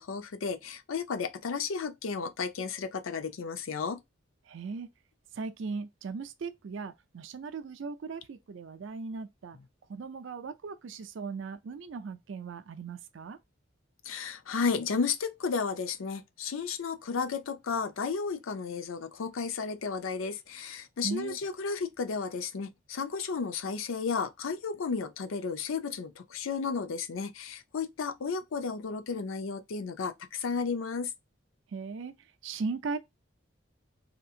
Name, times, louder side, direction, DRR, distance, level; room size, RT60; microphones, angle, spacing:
voice 1, 0.0-4.0 14.1-31.1, left 5 dB, 90° left, 0.5 m, -33 dB
voice 2, 4.5-4.9 5.3-9.6 9.9-13.4 21.0-21.4 31.7-32.1 32.4-33.0, right 4 dB, 75° right, 0.4 m, -38 dB
2.8 x 2.7 x 2.4 m
head